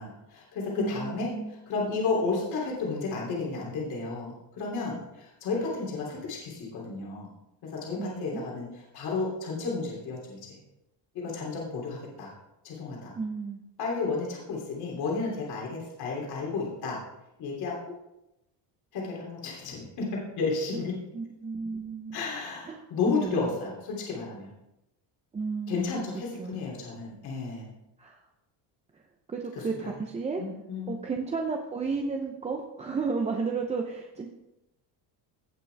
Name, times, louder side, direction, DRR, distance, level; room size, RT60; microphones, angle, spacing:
voice 1, 0.0-1.3 1.7-7.3 7.6-8.7 8.9-10.4 11.1-12.3 12.6-13.1 13.8-17.0 17.4-18.0 18.9-21.0 22.1-24.5 25.7-27.7 29.7-29.9 30.4-31.0, left 4 dB, 55° left, -3 dB, 3.1 m, -32 dB
voice 2, 0.8-1.5 7.9-8.4 13.2-13.6 20.7-20.8 21.1-22.2 22.6-22.8 23.1-23.5 25.3-26.0 26.4-26.6 28.0-28.2 28.9-29.0 29.3-30.4 30.9-34.3, right 4 dB, 15° right, 1 dB, 0.6 m, -33 dB
17.0 x 6.0 x 3.4 m, 0.90 s
cardioid pair, 160°, 45 cm